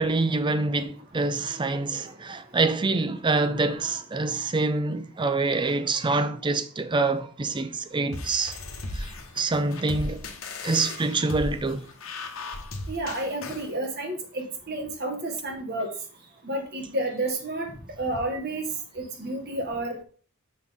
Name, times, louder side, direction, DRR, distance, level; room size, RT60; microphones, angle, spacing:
voice 1, 0.0-8.6 8.9-10.2 10.6-11.9, right 3 dB, 20° right, 0.5 m, -26 dB
sound 1, 8.1-13.7, left 2 dB, 65° left, 1.1 m, -36 dB
voice 2, 12.9-15.9 16.4-17.7 18.0-18.7 18.9-20.0, right 1 dB, 50° right, 1.5 m, -30 dB
6.3 x 5.9 x 3.6 m
head